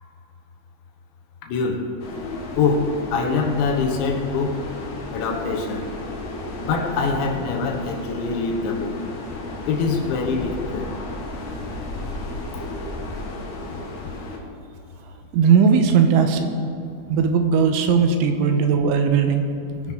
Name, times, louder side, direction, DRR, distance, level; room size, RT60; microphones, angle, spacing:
voice 1, 1.5-1.9 2.6-4.6 5.1-5.9 6.6-9.0 9.7-10.9 12.5-12.6, left 4 dB, 75° left, 2 dB, 3.4 m, -24 dB
sound 1, 2.0-14.4, left 2 dB, 55° left, 2.2 m, -33 dB
voice 2, 15.3-16.5 17.1-19.5, right 6 dB, 80° right, 5 dB, 3.3 m, -18 dB
21.5 x 10.5 x 3.8 m, 2.6 s
omnidirectional pair, 5.6 m